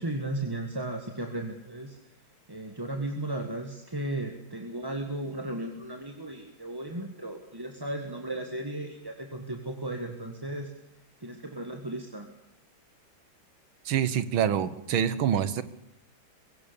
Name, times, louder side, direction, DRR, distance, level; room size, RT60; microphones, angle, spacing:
voice 1, 0.0-2.0 2.5-10.7 11.2-12.3, right 1 dB, 10° right, 4 dB, 1.6 m, -35 dB
voice 2, 13.9-15.6, right 9 dB, 80° right, 15 dB, 2.0 m, -26 dB
22.5 x 17.5 x 7.0 m, 0.78 s
omnidirectional pair, 2.2 m